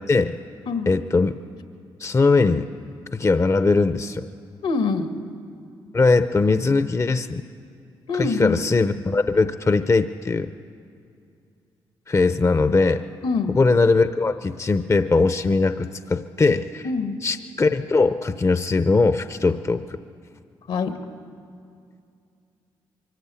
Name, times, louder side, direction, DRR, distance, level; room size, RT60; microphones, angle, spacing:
voice 1, 0.9-1.4 2.0-2.7 3.1-4.3 5.9-7.4 8.1-10.5 12.1-13.0 13.5-16.9 17.2-20.0, left 3 dB, 30° left, 11 dB, 0.7 m, -20 dB
voice 2, 4.6-5.1 8.1-8.6 13.2-13.6 16.8-17.2 20.7-21.0, left 4 dB, 75° left, 7 dB, 1.7 m, -24 dB
23.5 x 14.0 x 8.4 m, 2.5 s
supercardioid pair, 50°, 10 cm